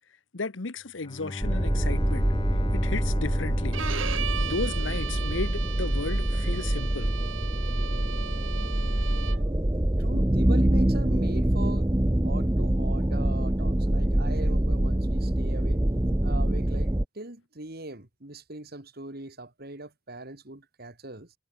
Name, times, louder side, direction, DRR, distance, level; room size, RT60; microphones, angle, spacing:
voice 1, 0.3-2.3 2.7-3.8 4.1-7.1, left 3 dB, 70° left, 1.1 m, -34 dB
Bowed string instrument, 1.0-5.3, left 2 dB, 25° left, 0.6 m, -35 dB
sound 1, 1.4-17.0, right 1 dB, 15° right, 0.8 m, -25 dB
Bowed string instrument 2, 3.7-9.6, right 7 dB, 80° right, 4.1 m, -37 dB
voice 2, 10.0-11.9 12.2-15.8 16.2-21.3, right 2 dB, 50° right, 2.6 m, -40 dB
head